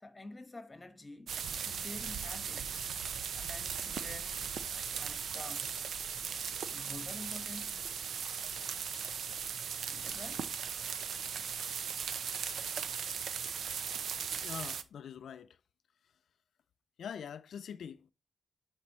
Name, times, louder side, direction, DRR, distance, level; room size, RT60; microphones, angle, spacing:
voice 1, 0.0-2.8 3.3-4.5 5.0-5.7 6.7-7.8 9.9-10.5, left 2 dB, 25° left, 1.3 m, -49 dB
sound 1, 1.3-14.8, right 7 dB, 85° right, 0.6 m, -38 dB
voice 2, 14.4-15.6 17.0-18.1, left 8 dB, 85° left, 0.3 m, -44 dB
10.0 x 4.2 x 3.1 m
cardioid pair, 80°, 0 cm